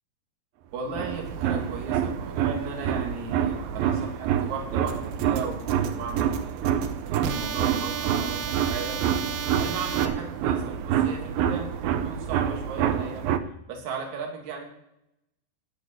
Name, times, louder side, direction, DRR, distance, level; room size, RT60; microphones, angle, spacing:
voice 1, 0.7-6.7 7.1-9.0 9.6-11.7 12.0-13.2 13.7-14.6, right 5 dB, 45° right, 2 dB, 3.4 m, -36 dB
sound 1, 0.9-13.4, right 9 dB, 85° right, 2.0 m, -27 dB
sound 2, 4.9-10.1, right 7 dB, 70° right, 2.5 m, -34 dB
17.5 x 7.1 x 8.0 m, 0.84 s
omnidirectional pair, 5.4 m